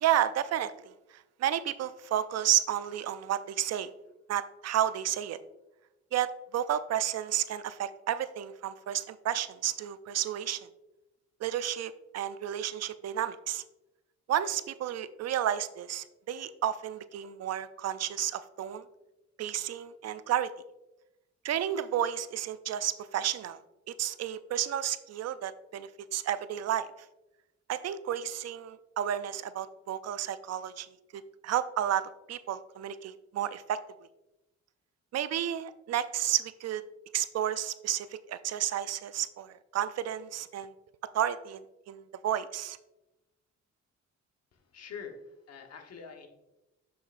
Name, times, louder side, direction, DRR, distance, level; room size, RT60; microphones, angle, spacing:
voice 1, 0.0-3.9 4.3-5.4 6.1-10.7 11.4-13.6 14.3-18.8 19.4-20.5 21.4-23.6 23.9-26.9 27.7-30.9 31.1-33.8 35.1-36.8 37.1-40.7 41.1-42.8, right 11 dB, 55° right, 14 dB, 0.4 m, -32 dB
voice 2, 44.5-46.3, left 6 dB, 55° left, 4 dB, 1.1 m, -45 dB
7.3 x 6.8 x 2.5 m, 0.97 s
cardioid pair, 90°, 30 cm